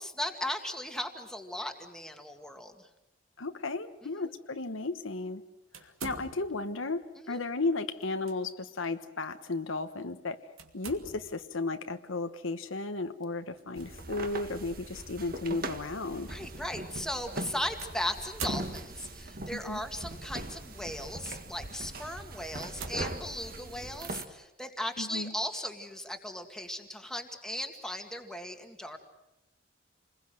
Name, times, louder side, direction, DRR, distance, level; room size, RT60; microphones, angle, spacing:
voice 1, 0.0-2.9 4.0-4.3 7.2-7.4 16.3-29.0, left 1 dB, 5° left, 5 dB, 2.1 m, -37 dB
voice 2, 3.4-5.4 5.8-10.5 10.7-16.3 19.5-19.8 25.0-25.3, left 3 dB, 75° left, 8 dB, 1.2 m, -34 dB
sound 1, 5.7-6.7 8.0-8.4 8.8-8.9 10.6-11.5 13.5-13.8 14.7-14.8 17.8-19.2 20.1-20.5 21.1-21.3 21.9-22.0 22.6-23.8, right 5 dB, 85° right, 2.7 m, -45 dB
sound 2, 13.8-24.2, right 2 dB, 45° right, 1.7 m, -40 dB
28.5 x 21.5 x 7.8 m, 0.92 s
head